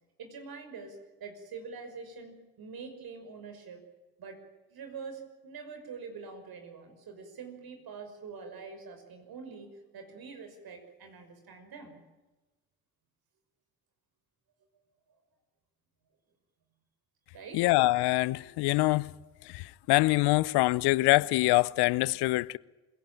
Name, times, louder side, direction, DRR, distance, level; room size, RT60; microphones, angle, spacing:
voice 1, 0.2-3.8 4.2-4.4 4.7-12.0 17.3-17.6, right 5 dB, 60° right, 6.1 m, -45 dB
voice 2, 17.5-19.1 19.5-22.6, left 20 dB, 75° left, 0.7 m, -25 dB
26.5 x 17.5 x 9.1 m
hypercardioid pair, 55°, 40 cm